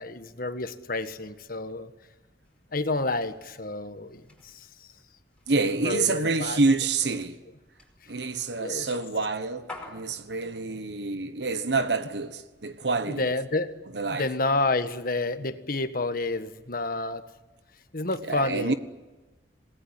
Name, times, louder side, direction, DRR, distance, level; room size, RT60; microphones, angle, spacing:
voice 1, 0.0-1.9 2.7-4.7 5.8-6.6 8.6-8.9 13.2-13.8 14.1-17.2 17.9-18.7, left 2 dB, 55° left, 1.6 m, -29 dB
sound 1, 2.4-10.5, left 2 dB, 5° left, 5.1 m, -51 dB
voice 2, 5.5-7.4 8.1-13.4 13.9-14.3 18.2-18.7, right 3 dB, 75° right, 1.3 m, -27 dB
27.5 x 19.5 x 9.9 m
head